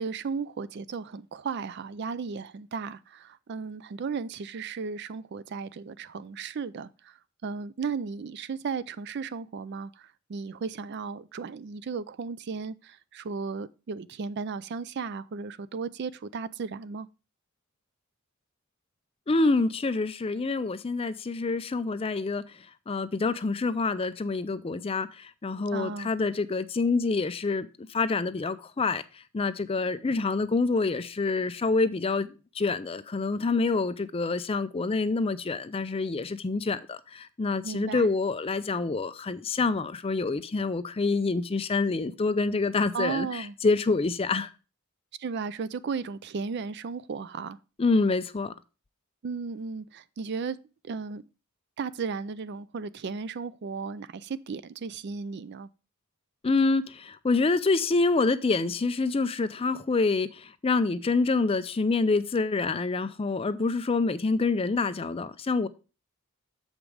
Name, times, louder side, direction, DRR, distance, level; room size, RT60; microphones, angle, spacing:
voice 1, 0.0-17.1 25.7-26.1 37.6-38.1 42.9-43.6 45.2-47.6 49.2-50.6 50.8-51.2 51.8-55.7, right 5 dB, 50° right, 0.4 m, -35 dB
voice 2, 19.3-22.4 22.9-29.0 29.3-44.5 47.8-48.5 56.4-65.7, left 3 dB, 25° left, 0.4 m, -27 dB
7.2 x 5.2 x 4.7 m
head